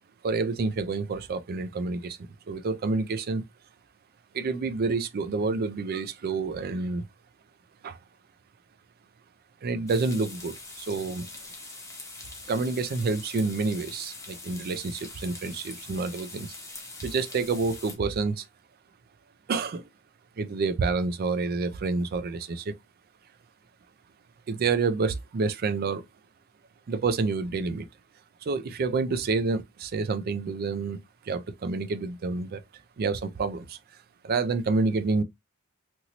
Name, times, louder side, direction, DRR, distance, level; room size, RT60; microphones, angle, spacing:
voice 1, 0.2-2.2 2.5-3.4 4.3-7.1 7.8-8.0 9.6-11.3 12.5-16.5 17.0-18.5 19.5-19.9 20.4-22.7 24.5-26.0 26.9-27.9 28.4-31.0 31.2-32.6 33.0-33.8 34.2-35.2, right 4 dB, 45° right, 0.4 m, -28 dB
sound 1, 9.9-17.9, left 3 dB, 15° left, 0.7 m, -43 dB
2.9 x 2.6 x 2.8 m
head